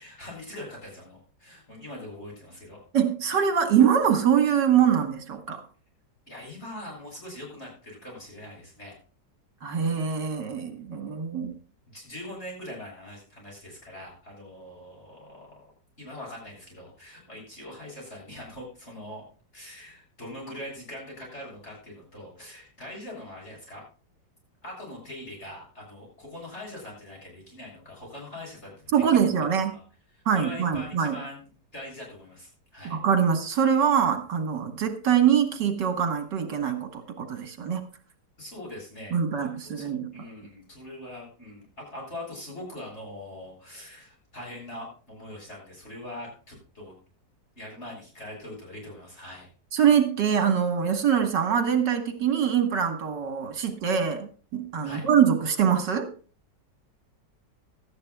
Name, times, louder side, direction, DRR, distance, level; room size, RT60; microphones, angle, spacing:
voice 1, 0.0-2.8 6.3-8.9 11.9-15.6 16.0-19.2 19.5-23.8 24.6-29.3 29.7-29.8 30.1-31.4 31.7-33.0 38.4-47.0 47.6-49.5 54.8-55.1, left 1 dB, 35° left, -2 dB, 8.1 m, -42 dB
voice 2, 2.9-5.6 9.6-11.5 28.9-29.7 30.3-31.2 32.9-37.8 39.1-40.1 49.7-56.1, right 8 dB, 70° right, 7 dB, 2.0 m, -24 dB
18.0 x 12.5 x 2.3 m, 0.37 s
omnidirectional pair, 2.0 m